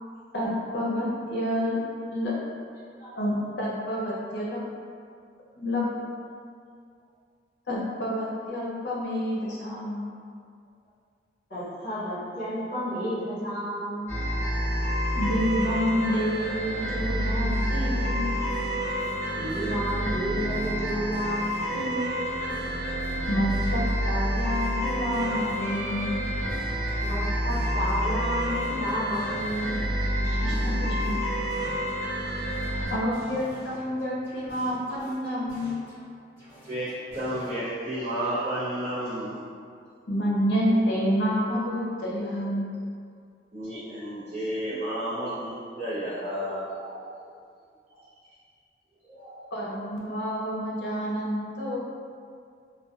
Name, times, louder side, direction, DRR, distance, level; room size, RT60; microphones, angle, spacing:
voice 1, 0.3-1.8 2.1-2.3 3.2-4.6 5.6-5.9 7.7-10.1 15.1-18.3 23.3-26.1 30.4-31.2 32.9-35.8 40.1-42.7 49.5-51.8, equal, 75° left, -5 dB, 0.6 m, -28 dB
voice 2, 11.5-14.1 19.2-22.2 27.0-29.8 30.2-30.5 30.8-31.0, equal, 50° left, -13 dB, 1.2 m, -31 dB
sound 1, 14.1-32.9, equal, 15° left, 0.8 m, -28 dB
sound 2, 17.5-20.0 20.4-24.0 24.4-28.0 28.4-32.0 32.4-36.0 36.4-37.5, equal, 15° right, 1.2 m, -48 dB
voice 3, 32.1-32.9 36.6-36.9 37.1-39.4 40.7-40.8 43.5-47.3 47.9-48.0 49.0-49.7 50.0-50.1, right 1 dB, 40° right, -14 dB, 0.5 m, -33 dB
2.6 x 2.1 x 2.3 m, 2.2 s
head